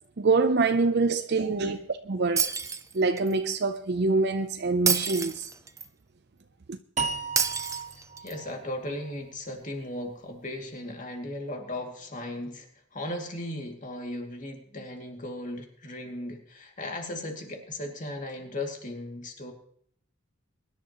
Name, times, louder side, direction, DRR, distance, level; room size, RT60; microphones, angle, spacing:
voice 1, 0.2-1.8 2.1-2.5 2.9-5.5 6.7-6.8, right 3 dB, 55° right, 0.6 m, -25 dB
Shatter, 2.4-3.3 4.9-5.9 7.4-8.4, right 6 dB, 15° right, 0.6 m, -28 dB
sound 1, 7.0-10.2, right 5 dB, 35° right, 1.1 m, -36 dB
voice 2, 8.2-19.5, left 1 dB, 40° left, 2.5 m, -37 dB
23.0 x 11.0 x 3.0 m
head